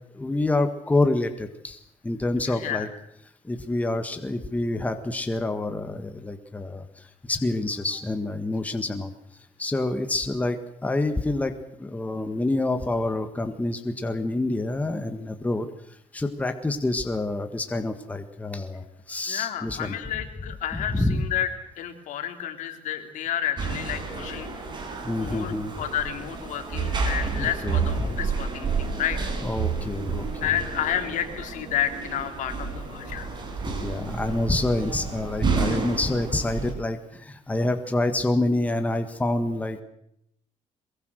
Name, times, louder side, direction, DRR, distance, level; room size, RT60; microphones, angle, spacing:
voice 1, 0.1-1.8 2.0-2.9 3.4-9.1 9.6-15.7 16.1-20.0 20.7-21.2 25.0-25.7 26.9-28.2 29.4-30.3 33.6-39.8, left 2 dB, 10° left, 7 dB, 1.6 m, -27 dB
voice 2, 2.5-2.9 19.3-21.5 21.8-24.5 25.2-25.5 25.8-29.3 30.4-33.3, left 10 dB, 70° left, 6 dB, 3.4 m, -30 dB
sound 1, 23.6-36.7, right 4 dB, 35° right, 5.8 m, -30 dB
22.5 x 22.5 x 6.4 m, 0.76 s
cardioid pair, 145°, 14 cm